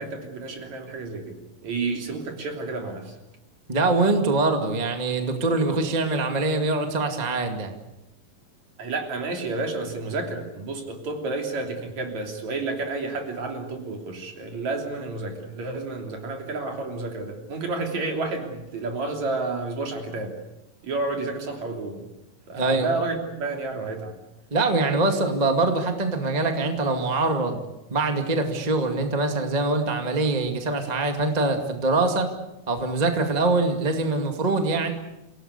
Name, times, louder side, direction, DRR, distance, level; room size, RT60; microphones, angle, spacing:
voice 1, 0.0-1.4 1.6-3.1 8.8-20.3 20.8-22.1 22.5-24.1, right 3 dB, 55° right, 3 dB, 4.4 m, -30 dB
voice 2, 3.7-7.7 22.5-22.9 24.5-27.6 27.9-32.3 32.7-34.9, right 3 dB, 15° right, 5 dB, 1.8 m, -23 dB
28.5 x 18.0 x 8.3 m, 0.92 s
omnidirectional pair, 3.8 m